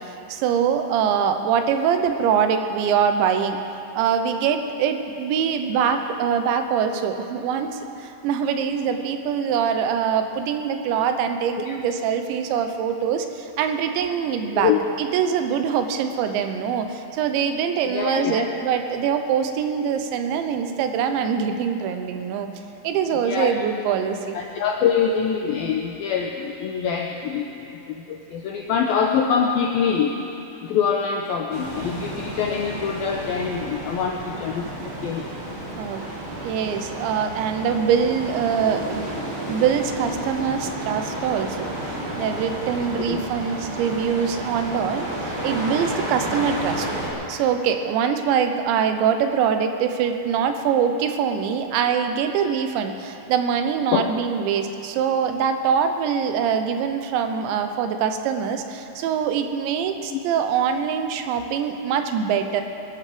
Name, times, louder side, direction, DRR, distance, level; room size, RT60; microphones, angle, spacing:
voice 1, 0.0-3.6 4.0-14.7 15.0-22.5 22.8-24.4 35.8-39.1 39.5-41.7 42.2-46.9 47.3-62.6, right 7 dB, 80° right, 7 dB, 3.1 m, -23 dB
voice 2, 17.8-18.5 23.1-23.5 24.3-30.2 30.6-35.3 43.0-43.3 53.9-54.1 60.1-60.2, left 7 dB, 85° left, 2 dB, 2.1 m, -24 dB
sound 1, 31.5-47.1, right 1 dB, 35° right, 2.5 m, -31 dB
22.5 x 12.5 x 5.1 m, 2.9 s
omnidirectional pair, 5.2 m